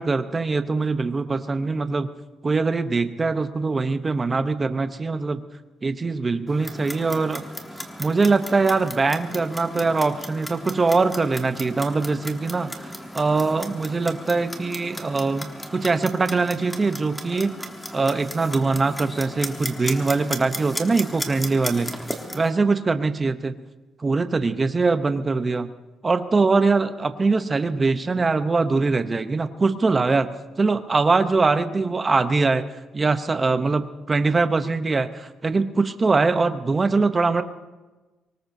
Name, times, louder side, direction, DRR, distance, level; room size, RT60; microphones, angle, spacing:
voice 1, 0.0-2.1 2.4-5.4 5.8-7.4 8.0-17.5 17.9-22.0 22.3-23.6 24.0-25.7 26.0-30.3 30.6-32.6 32.9-37.4, right 3 dB, 20° right, 10 dB, 0.7 m, -22 dB
Clock, 6.5-22.5, equal, 5° left, 1.2 m, -36 dB
24.5 x 19.0 x 2.7 m, 1.2 s
cardioid pair, 170°, 0 cm